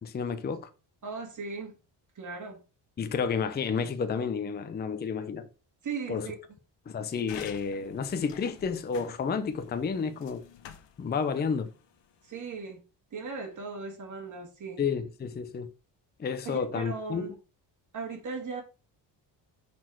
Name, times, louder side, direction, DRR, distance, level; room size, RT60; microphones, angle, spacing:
voice 1, 0.0-0.7 3.0-5.5 6.1-6.3 6.9-10.4 11.0-11.7 14.8-15.7 16.2-17.3, left 6 dB, 25° left, 0.6 m, -31 dB
voice 2, 1.0-1.7 2.1-2.6 5.8-6.3 12.2-12.8 13.1-14.8 16.4-17.3 17.9-18.6, right 5 dB, 45° right, 1.8 m, -37 dB
sound 1, 7.3-12.5, left 9 dB, 85° left, 1.0 m, -50 dB
6.1 x 4.2 x 4.5 m
cardioid pair, 115°, 42 cm